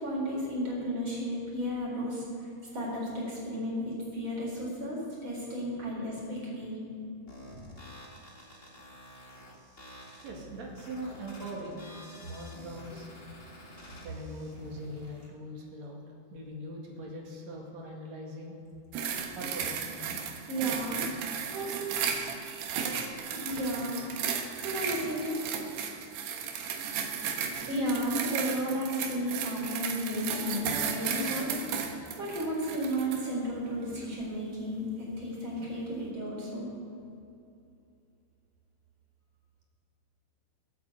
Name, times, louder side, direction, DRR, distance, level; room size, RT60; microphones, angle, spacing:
voice 1, 0.0-6.8 20.5-21.0 21.5-21.8 23.3-24.0 24.3-25.4 27.7-31.5 32.2-36.7, equal, 30° right, -4 dB, 4.5 m, -33 dB
sound 1, 7.3-15.3, left 1 dB, 30° left, 1.1 m, -49 dB
voice 2, 10.2-13.1 14.0-16.0 16.3-18.5 19.3-20.2, equal, 50° right, -1 dB, 3.1 m, -41 dB
sound 2, 18.9-33.3 33.9-34.1, right 7 dB, 85° right, 3.3 m, -35 dB
17.5 x 8.6 x 8.2 m, 2.7 s
omnidirectional pair, 4.6 m